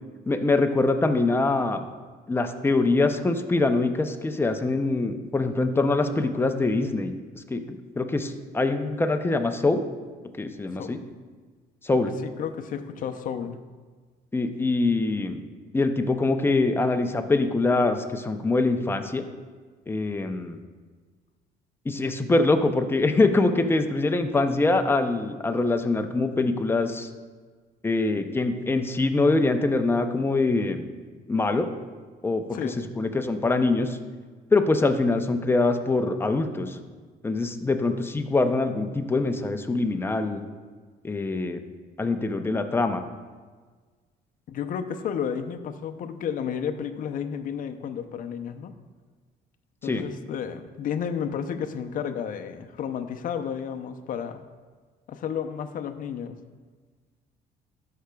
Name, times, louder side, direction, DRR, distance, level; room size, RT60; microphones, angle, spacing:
voice 1, 0.3-1.8 2.3-9.8 10.4-11.0 11.8-12.1 14.3-15.4 15.7-19.3 19.9-20.6 21.9-27.1 27.8-30.8 31.3-31.7 32.2-32.6 33.0-34.0 34.5-36.8 37.2-40.4 41.0-41.6 42.0-43.0 49.9-50.0, left 3 dB, 15° left, 6 dB, 0.6 m, -24 dB
voice 2, 12.2-13.6 32.5-32.8 44.5-48.7 49.8-54.4 55.1-56.4, left 7 dB, 55° left, 8 dB, 0.6 m, -32 dB
13.0 x 5.7 x 2.3 m, 1.5 s
cardioid pair, 110°, 17 cm